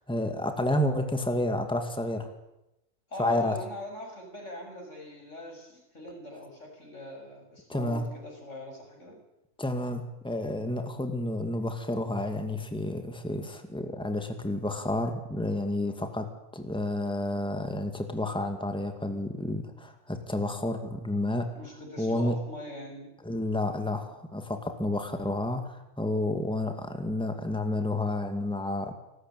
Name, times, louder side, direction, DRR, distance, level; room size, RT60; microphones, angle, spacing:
voice 1, 0.0-2.3 3.2-3.6 7.7-8.0 9.6-21.5 22.0-22.4 23.2-28.9, left 1 dB, 5° left, 6 dB, 2.2 m, -30 dB
voice 2, 3.1-9.2 21.5-23.1, left 1 dB, 85° left, 1 dB, 7.0 m, -42 dB
29.5 x 13.0 x 9.3 m, 0.92 s
omnidirectional pair, 1.2 m